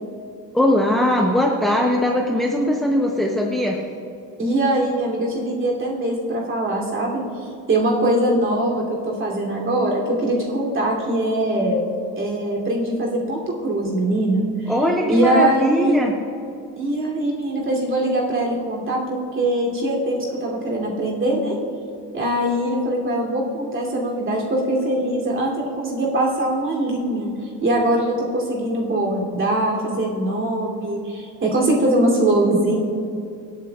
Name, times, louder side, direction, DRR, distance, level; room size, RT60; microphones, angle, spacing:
voice 1, 0.5-3.8 14.7-16.2, left 1 dB, ahead, 0 dB, 0.8 m, -20 dB
voice 2, 4.4-11.8 12.2-14.7 15.1-16.0 16.8-21.5 22.1-27.3 27.6-32.8, right 1 dB, 30° right, -3 dB, 3.0 m, -22 dB
25.5 x 8.6 x 2.4 m, 2.6 s
cardioid pair, 125°, 40 cm